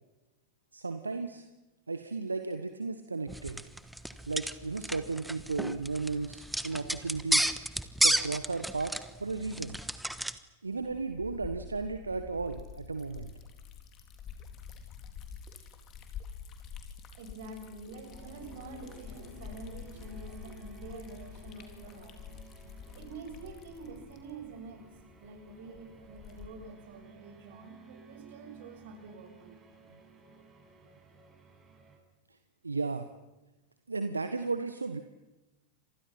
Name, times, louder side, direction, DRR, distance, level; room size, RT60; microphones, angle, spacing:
voice 1, 0.7-1.4 1.9-3.6 4.3-7.5 8.0-8.9 9.2-9.8 10.6-13.3 29.9-30.0 32.6-33.1 33.9-35.0, right 3 dB, 80° right, 9 dB, 1.3 m, -34 dB
sound 1, 3.3-10.4, right 1 dB, ahead, 1.3 m, -32 dB
Liquid, 10.7-26.8, left 7 dB, 35° left, 3.5 m, -48 dB
voice 2, 17.2-22.2 22.9-24.8 25.2-29.7, right 3 dB, 55° right, 5 dB, 6.6 m, -47 dB
sound 2, 17.9-32.0, right 5 dB, 20° right, 6.3 m, -56 dB
30.0 x 26.5 x 5.8 m, 1.0 s
figure-of-eight pair, 90°, 0 cm